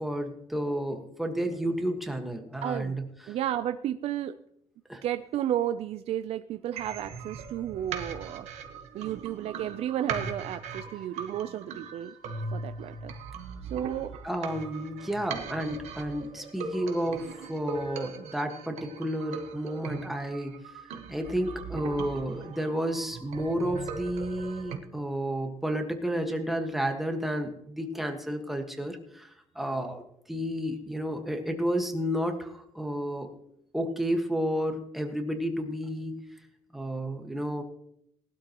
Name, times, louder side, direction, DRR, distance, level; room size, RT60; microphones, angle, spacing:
voice 1, 0.0-3.4 4.9-5.0 14.2-20.6 21.1-33.3 33.7-36.2 36.7-37.6, equal, ahead, 3 dB, 1.6 m, -31 dB
voice 2, 2.6-3.0 3.3-4.4 5.0-8.5 8.9-12.1 12.5-13.1 13.7-14.1, right 11 dB, 65° right, 9 dB, 0.5 m, -32 dB
sound 1, 6.8-24.8, right 5 dB, 85° right, 1.4 m, -39 dB
19.0 x 12.0 x 3.0 m, 0.73 s
cardioid pair, 145°, 11 cm